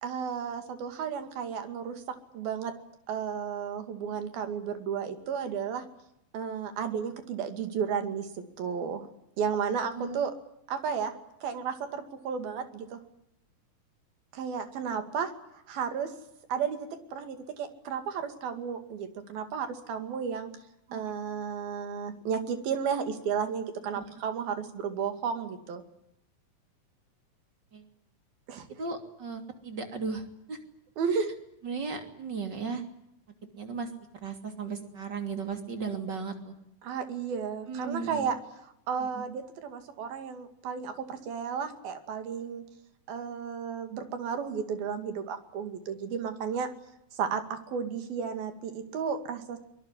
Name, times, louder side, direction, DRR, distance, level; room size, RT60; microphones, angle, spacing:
voice 1, 0.0-2.0 2.3-2.7 3.1-5.8 6.3-8.3 8.6-9.1 9.4-10.3 10.7-11.1 11.4-13.0 14.3-15.3 15.7-16.1 16.5-20.5 20.9-25.8 28.5-28.7 31.0-31.3 36.8-38.4 38.9-42.6 43.1-46.7 47.1-49.6, right 7 dB, 90° right, 8 dB, 4.2 m, -33 dB
voice 2, 9.8-10.2 20.9-21.0 23.9-24.0 27.7-27.8 28.8-30.6 31.1-31.2 31.6-32.8 33.6-33.9 34.2-36.5 37.7-38.3 39.0-39.2, right 5 dB, 30° right, 6 dB, 3.2 m, -36 dB
24.0 x 22.0 x 9.9 m, 0.78 s
omnidirectional pair, 4.1 m